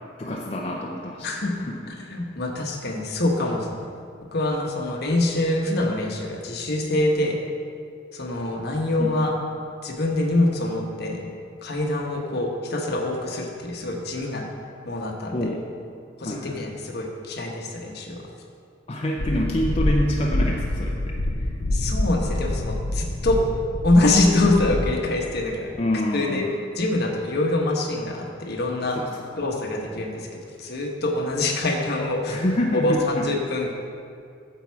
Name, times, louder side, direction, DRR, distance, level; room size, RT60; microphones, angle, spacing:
voice 1, 0.2-1.3 1.7-1.9 9.0-9.1 15.3-15.7 16.2-16.6 18.9-21.5 25.8-26.5 28.9-29.4 32.3-33.3, left 1 dB, 30° left, -1 dB, 0.6 m, -27 dB
voice 2, 1.2-3.9 4.3-7.4 8.1-9.3 9.8-11.3 11.6-14.5 14.9-15.5 16.2-18.2 21.7-23.4 23.8-25.7 26.1-26.4 26.8-29.0 29.4-30.3 30.6-32.4 32.7-33.7, left 2 dB, 55° left, 1 dB, 1.1 m, -25 dB
sound 1, 19.2-24.9, left 1 dB, 90° left, 0.8 m, -26 dB
8.9 x 7.2 x 4.6 m, 2.3 s
head